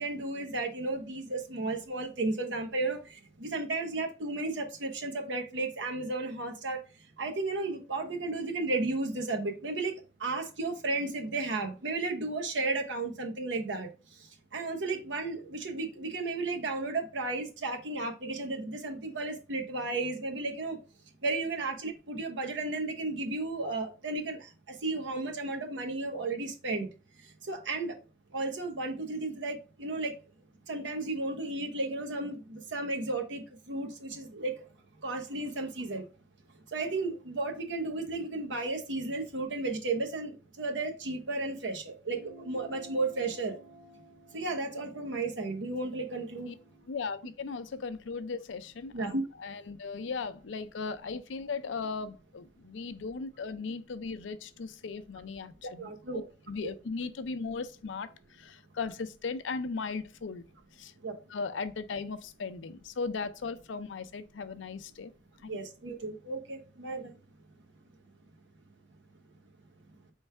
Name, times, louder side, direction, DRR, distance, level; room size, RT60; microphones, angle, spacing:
voice 1, 0.0-6.8 7.2-9.9 10.2-13.9 14.5-20.8 21.2-26.9 27.5-28.0 28.3-30.1 30.7-34.5 35.0-36.1 36.7-43.5 44.3-46.5 48.9-49.2 55.8-56.3 56.6-56.7 61.0-61.2 65.5-67.1, right 3 dB, 75° right, 0.9 m, -33 dB
sound 1, 42.1-46.9, equal, 55° right, 1.2 m, -54 dB
voice 2, 46.9-60.5 60.7-60.9 61.3-65.1 65.4-65.5, left 4 dB, 80° left, 0.5 m, -37 dB
4.5 x 3.2 x 3.4 m
head